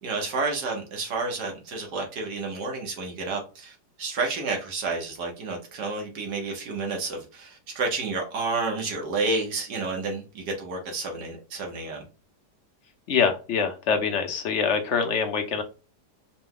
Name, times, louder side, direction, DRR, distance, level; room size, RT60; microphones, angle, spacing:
voice 1, 0.0-12.0, right 3 dB, 75° right, 1 dB, 1.6 m, -30 dB
voice 2, 13.1-15.6, left 6 dB, 55° left, 6 dB, 0.9 m, -24 dB
4.9 x 2.2 x 3.7 m, 0.33 s
omnidirectional pair, 1.8 m